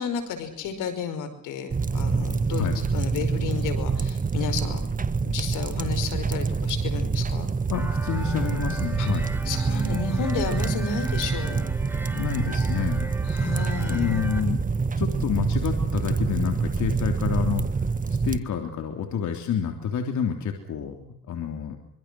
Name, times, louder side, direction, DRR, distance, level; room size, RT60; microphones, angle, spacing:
voice 1, 0.0-4.8 5.2-7.5 9.0-9.1 9.5-11.7 13.3-14.2, left 6 dB, 90° left, 8 dB, 5.4 m, -32 dB
sound 1, 1.7-18.4, right 4 dB, 25° right, 1.7 m, -26 dB
voice 2, 7.7-9.3 12.1-13.0 13.8-14.6 15.0-17.8 18.1-21.8, left 8 dB, 70° left, 4 dB, 3.6 m, -28 dB
sound 2, 7.7-14.4, right 1 dB, 5° right, 4.9 m, -39 dB
25.5 x 25.0 x 6.3 m, 0.70 s
cardioid pair, 90°, 30 cm